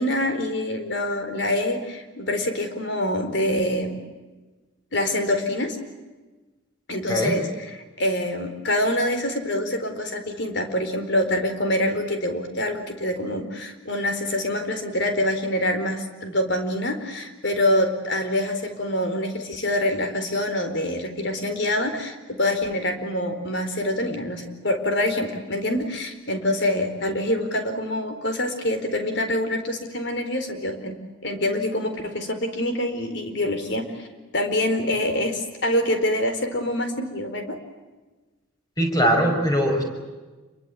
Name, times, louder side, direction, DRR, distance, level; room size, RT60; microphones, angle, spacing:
voice 1, 0.0-4.0 4.9-5.8 6.9-34.1 34.3-37.6, left 1 dB, 55° left, 6 dB, 4.3 m, -25 dB
voice 2, 38.8-39.8, equal, 20° left, 3 dB, 6.1 m, -20 dB
28.5 x 23.0 x 8.5 m, 1.2 s
head